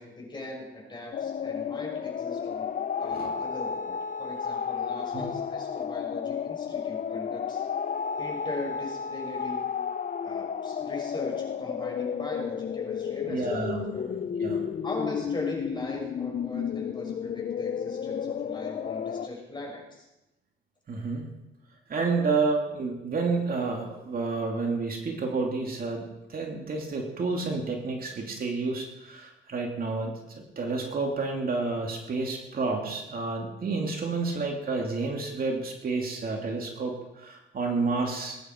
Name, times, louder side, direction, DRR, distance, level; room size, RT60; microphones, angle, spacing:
voice 1, 0.0-2.7 3.0-7.6 8.2-9.8 10.2-14.1 14.8-20.1, left 2 dB, 25° left, -1 dB, 6.1 m, -39 dB
sound 1, 1.1-19.3, left 7 dB, 40° left, 0.6 m, -32 dB
voice 2, 13.3-14.0 14.2-14.7 20.9-21.3 21.9-30.1 30.6-38.4, right 3 dB, 45° right, 1 dB, 2.8 m, -30 dB
20.0 x 10.5 x 4.6 m, 0.95 s
cardioid pair, 90°, 20 cm